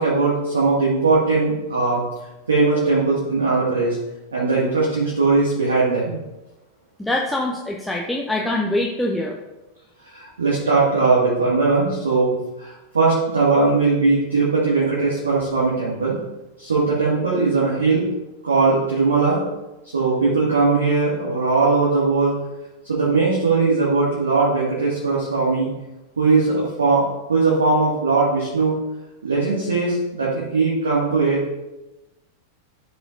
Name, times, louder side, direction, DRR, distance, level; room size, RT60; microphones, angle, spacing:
voice 1, 0.0-2.0 2.5-4.0 4.3-6.2 10.0-12.3 12.6-16.2 16.6-18.0 18.4-19.4 19.9-22.4 22.9-25.7 26.2-27.0 27.3-28.8 29.2-31.4, right 3 dB, 70° right, -6 dB, 1.8 m, -19 dB
voice 2, 7.0-9.3, left 1 dB, 5° left, -2 dB, 0.7 m, -24 dB
13.5 x 5.0 x 2.5 m, 1.0 s
figure-of-eight pair, 90°, 0 cm